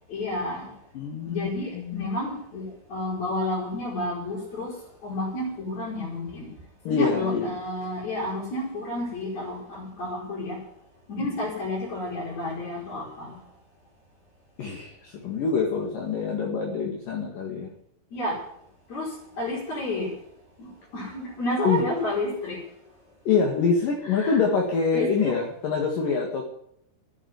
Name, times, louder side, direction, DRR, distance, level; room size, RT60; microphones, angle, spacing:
voice 1, 0.1-0.7 1.2-4.7 5.0-6.5 6.9-10.6 11.1-13.3 18.1-18.4 18.9-20.1 20.6-22.6 24.0-24.4 24.9-25.3, left 1 dB, 45° left, -8 dB, 6.6 m, -31 dB
voice 2, 1.0-2.1 6.9-7.5 14.6-17.7 21.6-21.8 23.3-26.4, left 5 dB, 60° left, 0 dB, 3.5 m, -25 dB
14.5 x 10.0 x 9.6 m, 0.72 s
omnidirectional pair, 4.6 m